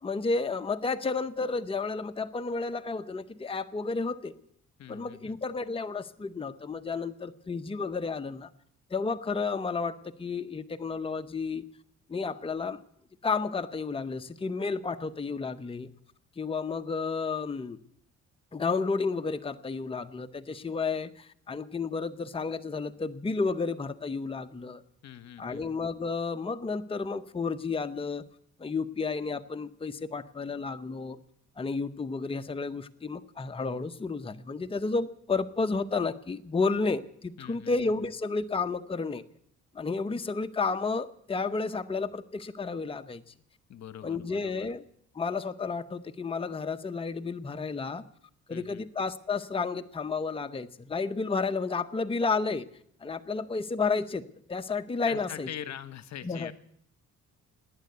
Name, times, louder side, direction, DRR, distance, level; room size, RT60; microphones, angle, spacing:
voice 1, 0.0-4.3 4.9-8.5 8.9-11.6 12.1-12.8 13.2-15.9 16.4-17.8 18.5-24.8 25.4-28.2 28.6-31.2 31.6-39.2 39.7-43.3 44.0-44.8 45.1-48.0 48.5-52.7 53.0-54.2 54.5-55.5 56.2-56.5, left 4 dB, 20° left, 8 dB, 0.8 m, -31 dB
voice 2, 4.8-5.4 25.0-25.7 37.4-37.8 43.7-44.7 48.5-48.8 55.1-56.5, left 10 dB, 60° left, 13 dB, 1.0 m, -43 dB
18.5 x 9.5 x 8.1 m, 0.68 s
cardioid pair, 90°, 30 cm